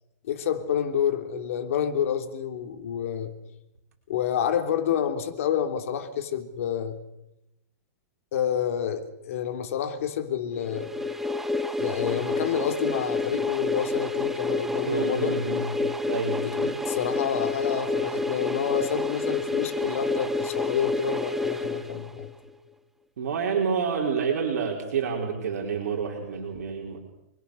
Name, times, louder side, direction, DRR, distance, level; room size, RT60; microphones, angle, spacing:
voice 1, 0.3-3.3 4.1-7.0 8.3-10.9 11.8-15.4 16.4-22.3, left 8 dB, 55° left, 3.2 m, -29 dB
sound 1, 10.6-22.5, left 3 dB, 5° right, 1.0 m, -29 dB
voice 2, 14.8-15.7 16.1-16.4 23.2-27.0, right 6 dB, 70° right, 5.2 m, -28 dB
28.5 x 22.0 x 6.8 m
hypercardioid pair, 170°, 9 cm